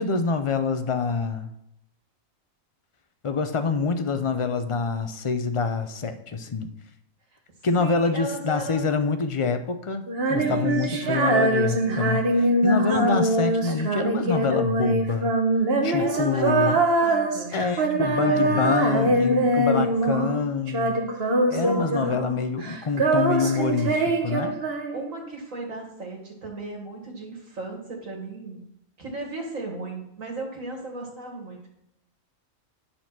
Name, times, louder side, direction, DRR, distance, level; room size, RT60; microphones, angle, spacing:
voice 1, 0.0-1.5 3.2-6.7 7.6-10.0 10.3-15.3 15.8-16.8 17.5-21.0 21.5-23.9 24.2-24.5, left 4 dB, 35° left, 9 dB, 0.5 m, -26 dB
voice 2, 7.8-9.0 10.4-11.1 13.0-13.3 15.7-20.0 21.2-22.2 23.9-28.6 29.0-31.7, right 2 dB, 80° right, -1 dB, 2.5 m, -36 dB
Female singing, 10.1-20.4 20.7-22.4 22.6-25.3, right 2 dB, 50° right, 1.3 m, -23 dB
11.0 x 4.4 x 6.0 m, 0.78 s
omnidirectional pair, 1.4 m